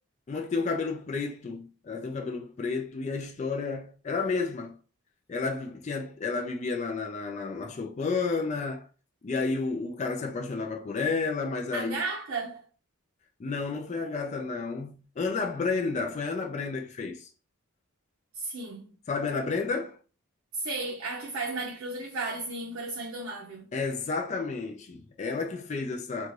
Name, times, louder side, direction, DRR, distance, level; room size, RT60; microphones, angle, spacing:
voice 1, 0.3-4.8 5.3-8.8 9.2-12.0 13.4-17.3 19.1-20.0 23.7-26.3, left 4 dB, 30° left, 0.3 m, -31 dB
voice 2, 11.7-12.6 18.3-18.9 20.5-23.7, right 3 dB, 65° right, 0.5 m, -34 dB
2.5 x 2.3 x 3.1 m
head